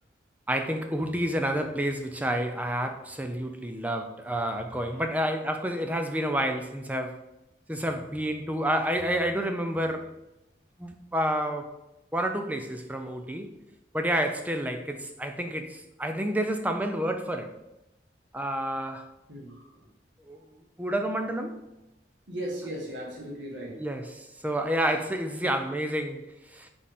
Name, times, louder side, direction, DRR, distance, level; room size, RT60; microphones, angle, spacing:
voice 1, 0.5-7.2 7.7-10.1 10.8-11.7 12.1-13.5 13.9-17.5 18.3-19.1 20.2-20.4 20.8-21.6 23.7-26.7, equal, 10° right, 0.5 m, -29 dB
voice 2, 19.3-19.9 20.4-20.5 22.3-23.9, right 1 dB, 90° right, 1.8 m, -37 dB
5.1 x 4.8 x 5.2 m
head